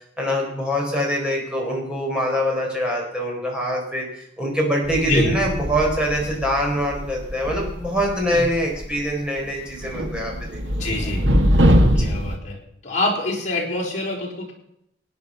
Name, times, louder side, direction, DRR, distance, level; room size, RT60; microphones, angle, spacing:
voice 1, 0.2-10.9 12.0-12.1, equal, 5° right, -2 dB, 4.2 m, -24 dB
sound 1, 4.9-9.1 9.4-12.4, equal, 80° right, 1.8 m, -22 dB
voice 2, 10.8-11.2 11.9-12.6 12.8-14.5, left 1 dB, 40° left, -2 dB, 4.4 m, -25 dB
17.5 x 9.6 x 5.7 m, 0.78 s
head